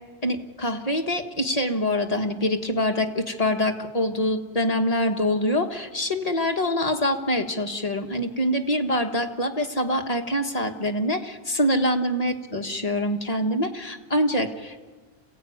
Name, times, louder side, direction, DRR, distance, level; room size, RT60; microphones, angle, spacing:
voice 1, 0.2-14.9, left 1 dB, 35° left, 3 dB, 1.7 m, -25 dB
28.0 x 16.0 x 9.5 m, 1.4 s
omnidirectional pair, 1.1 m